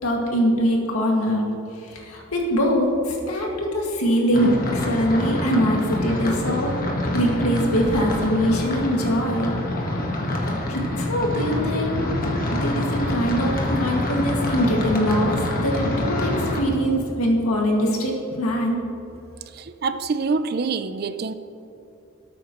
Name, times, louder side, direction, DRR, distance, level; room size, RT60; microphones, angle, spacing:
voice 1, 0.0-1.5 1.8-6.8 7.1-9.6 10.7-12.2 12.5-18.8, equal, 85° left, -1 dB, 2.1 m, -23 dB
sound 1, 4.3-16.6, left 1 dB, 40° left, 1.4 m, -26 dB
voice 2, 19.5-21.3, right 4 dB, 45° right, 12 dB, 0.4 m, -26 dB
18.5 x 8.6 x 3.1 m, 2.9 s
head